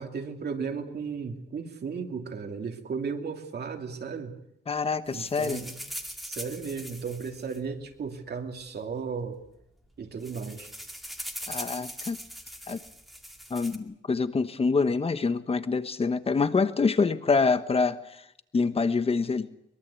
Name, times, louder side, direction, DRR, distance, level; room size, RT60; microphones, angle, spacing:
voice 1, 0.0-4.3 5.1-5.8 6.2-9.4 10.0-10.7, right 5 dB, 60° right, 4 dB, 2.8 m, -35 dB
voice 2, 4.7-5.7 11.5-12.2 12.7-12.8 13.5-18.0 18.5-19.5, left 4 dB, 30° left, 12 dB, 1.2 m, -26 dB
sound 1, 5.1-8.3 9.1-9.2 9.4-9.6 9.9-13.8, equal, ahead, 2.1 m, -41 dB
23.0 x 22.5 x 8.4 m, 0.79 s
wide cardioid pair, 170°, 19 cm